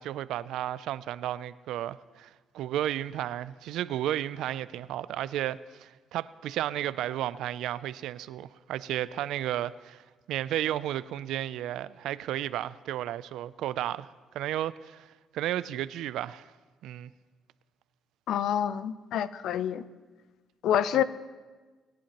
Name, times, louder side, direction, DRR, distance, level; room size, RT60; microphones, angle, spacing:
voice 1, 0.0-10.0 10.3-14.1 14.3-15.0 15.3-16.5 16.8-17.1 20.9-21.0, right 12 dB, 85° right, 0.3 m, -33 dB
voice 2, 18.3-19.9 20.6-21.0, left 10 dB, 80° left, 0.5 m, -27 dB
21.0 x 10.5 x 2.9 m
cardioid pair, 90°, 0 cm